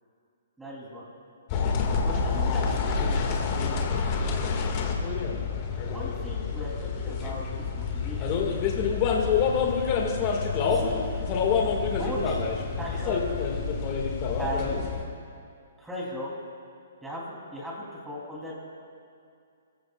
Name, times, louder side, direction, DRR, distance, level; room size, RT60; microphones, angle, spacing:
voice 1, 0.6-1.0 2.0-3.9 5.8-8.6 10.6-11.0 11.6-12.5 12.8-13.3 14.4-14.9 15.8-16.3 17.0-18.5, equal, 5° right, -5 dB, 3.1 m, -37 dB
sound 1, 1.5-15.0, left 5 dB, 30° left, 1.8 m, -27 dB
28.0 x 15.0 x 2.4 m, 2.4 s
hypercardioid pair, 160°, 0 cm